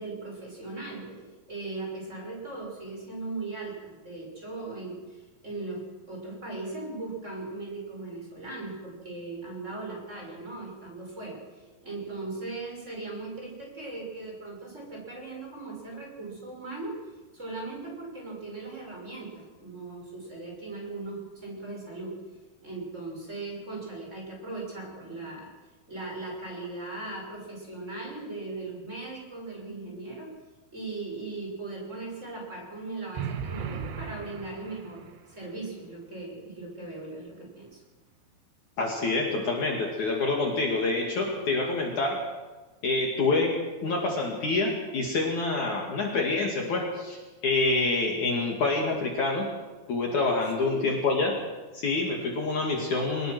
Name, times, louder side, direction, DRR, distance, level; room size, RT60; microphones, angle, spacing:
voice 1, 0.0-17.0 17.3-22.2 22.6-25.5 25.9-30.3 30.7-37.8 50.3-50.9, right 3 dB, 15° right, -1 dB, 6.2 m, -38 dB
sound 1, 33.2-35.2, right 7 dB, 85° right, 3.6 m, -36 dB
voice 2, 38.8-42.3 42.8-49.5 49.9-51.4 51.7-53.3, left 3 dB, 55° left, 0 dB, 3.4 m, -27 dB
24.0 x 20.0 x 6.2 m, 1.3 s
omnidirectional pair, 4.5 m